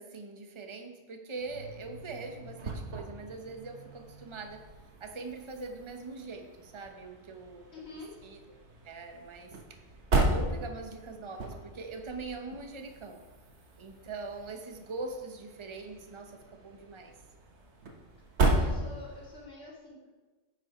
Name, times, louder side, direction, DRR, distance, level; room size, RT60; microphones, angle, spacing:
voice 1, 0.0-4.6 5.0-7.7 8.2-8.4 8.8-9.8 10.1-13.2 13.8-17.1, right 3 dB, 30° right, 4 dB, 0.9 m, -42 dB
sound 1, 1.4-19.4, right 2 dB, 75° right, 1.4 m, -36 dB
voice 2, 7.7-8.1 18.5-20.1, left 2 dB, 70° left, -5 dB, 2.8 m, -46 dB
9.9 x 6.1 x 4.8 m, 1.2 s
omnidirectional pair, 1.2 m